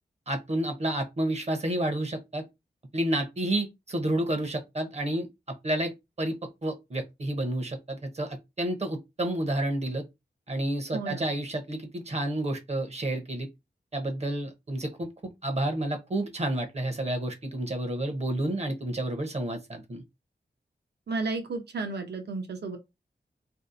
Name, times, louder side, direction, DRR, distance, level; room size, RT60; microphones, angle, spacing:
voice 1, 0.3-2.4 2.9-5.3 5.6-5.9 6.2-6.3 6.6-10.0 10.5-13.5 13.9-15.1 15.4-20.0, right 1 dB, 40° right, 0.7 m, -30 dB
voice 2, 10.9-11.3 21.1-22.8, right 3 dB, 75° right, 0.6 m, -33 dB
2.6 x 2.0 x 2.4 m
wide cardioid pair, 80°, 17 cm